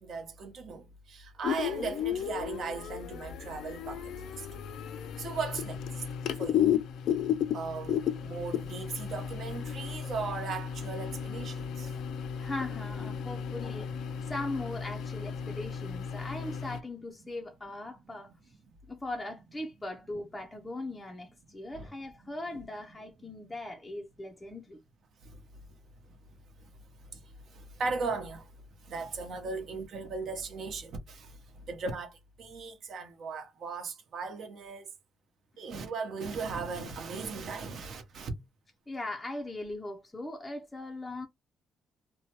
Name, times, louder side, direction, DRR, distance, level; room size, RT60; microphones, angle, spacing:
voice 1, 0.0-4.1 4.4-4.5 5.2-5.8 6.4-6.7 7.5-11.9 21.7-21.9 27.5-28.4 28.9-31.3 31.7-34.9 35.6-38.3, right 4 dB, 60° right, 0.9 m, -37 dB
sound 1, 1.4-16.8, left 9 dB, 75° left, 0.3 m, -34 dB
voice 2, 12.4-18.5 18.9-24.8 38.9-41.3, left 2 dB, 10° left, 0.5 m, -39 dB
2.7 x 2.1 x 2.9 m
cardioid pair, 130°, 0 cm